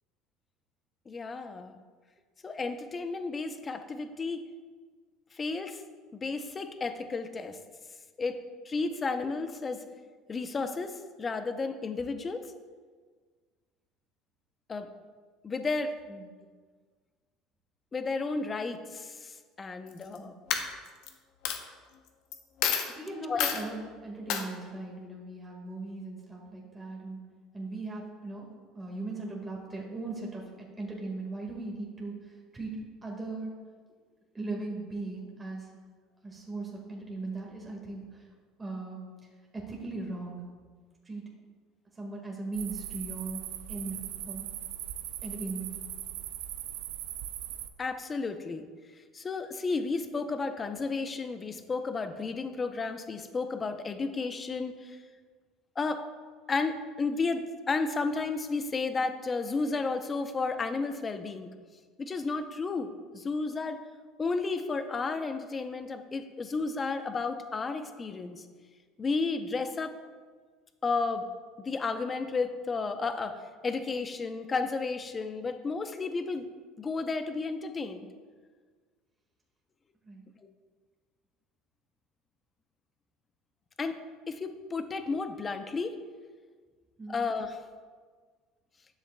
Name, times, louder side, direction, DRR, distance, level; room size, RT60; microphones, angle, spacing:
voice 1, 1.1-1.8 2.4-4.4 5.3-5.8 6.1-7.6 8.2-9.8 10.3-12.5 14.7-14.9 15.4-15.9 17.9-20.3 23.3-23.4 47.8-48.7 49.1-55.0 55.8-56.0 56.5-61.5 62.0-63.8 64.2-68.5 69.0-69.9 70.8-71.3 71.6-76.5 76.8-78.1 83.8-84.0 84.3-86.0 87.1-87.6, left 4 dB, 30° left, 8 dB, 0.7 m, -32 dB
Coin (dropping), 19.9-20.2 20.5-21.1 21.4-21.6 22.3-22.4 22.6-22.9 23.4-23.6 24.3-24.4, left 8 dB, 70° left, 0.8 m, -28 dB
voice 2, 22.9-23.8 24.0-27.3 27.5-28.5 28.7-33.5 34.3-35.7 36.2-38.3 38.6-40.4 41.0-41.2 41.9-43.4 43.7-44.5 45.2-45.8 80.0-80.2 87.0-87.1, right 2 dB, 20° right, -2 dB, 1.7 m, -39 dB
sound 1, 42.5-47.7, right 12 dB, 80° right, 0.4 m, -39 dB
9.9 x 7.3 x 2.3 m, 1.5 s
supercardioid pair, 95°, 0 cm